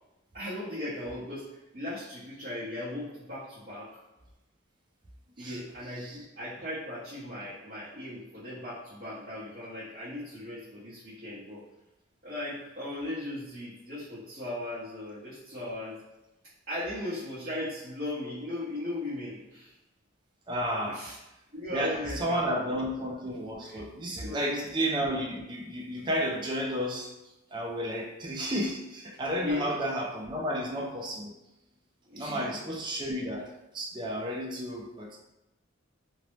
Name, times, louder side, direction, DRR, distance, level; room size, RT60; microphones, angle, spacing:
voice 1, 0.3-4.0 5.4-11.6 12.2-16.0 16.7-19.7 20.9-21.2 21.5-22.9 23.6-24.6 29.4-29.8 32.1-32.5, left 1 dB, 40° right, -12 dB, 0.7 m, -37 dB
voice 2, 20.5-21.1 21.7-27.1 27.5-31.3 32.2-35.2, equal, 20° right, 0 dB, 0.3 m, -32 dB
2.6 x 2.0 x 3.0 m, 0.94 s
head